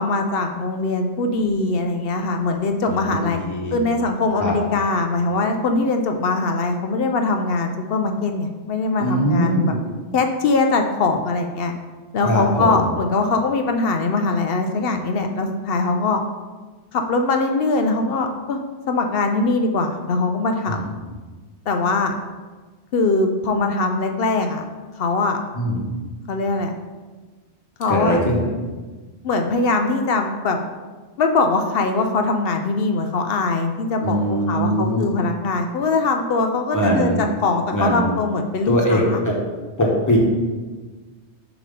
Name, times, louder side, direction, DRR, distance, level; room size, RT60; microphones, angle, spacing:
voice 1, 0.0-3.4 3.7-9.7 10.1-11.7 12.1-16.2 16.9-18.6 18.9-20.9 21.7-22.2 22.9-24.6 25.0-25.4 26.3-26.7 27.8-28.2 29.2-30.6 31.2-39.2, left 3 dB, 65° left, 5 dB, 0.7 m, -21 dB
voice 2, 2.9-3.8 4.3-4.5 9.0-9.8 12.2-12.8 20.7-20.9 25.5-25.8 27.9-28.5 34.0-35.0 36.7-37.3 37.7-38.1 38.7-39.4 39.8-40.2, equal, 15° left, -2 dB, 1.1 m, -21 dB
6.9 x 3.0 x 5.3 m, 1.3 s
omnidirectional pair, 1.2 m